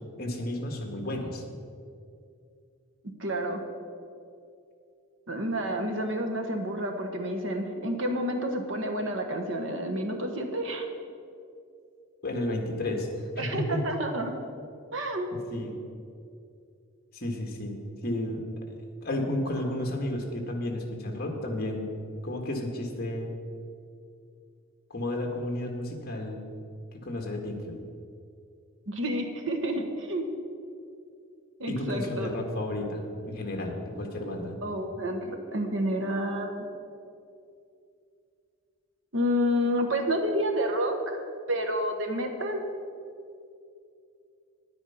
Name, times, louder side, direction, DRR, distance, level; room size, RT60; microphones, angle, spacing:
voice 1, 0.2-1.4 12.2-13.1 13.4-13.8 15.5-15.7 17.1-17.8 18.0-18.4 19.0-21.9 22.2-23.4 24.9-26.4 26.9-27.8 31.7-34.5, left 1 dB, 45° left, 2 dB, 1.5 m, -32 dB
voice 2, 3.2-3.6 5.3-10.9 13.4-14.3 14.9-15.3 28.9-30.2 31.6-32.3 34.6-36.7 39.1-41.2 41.5-42.6, equal, 60° right, 4 dB, 1.2 m, -29 dB
10.0 x 9.4 x 5.6 m, 2.5 s
head